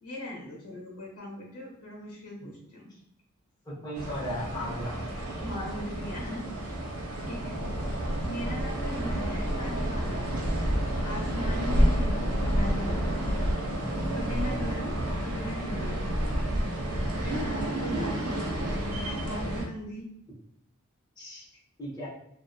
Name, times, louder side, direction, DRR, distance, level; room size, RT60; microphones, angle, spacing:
voice 1, 0.0-2.9 5.4-6.8 7.3-7.6 8.2-10.3 11.0-13.1 14.1-15.0 15.2-16.0 17.2-18.4 19.0-20.0, left 1 dB, 85° left, -3 dB, 1.0 m, -39 dB
voice 2, 3.7-4.9 21.2-21.4 21.8-22.1, equal, 20° left, -8 dB, 0.7 m, -36 dB
sound 1, 3.9-19.6, equal, 75° right, 0.5 m, -29 dB
2.5 x 2.2 x 2.3 m, 0.75 s
head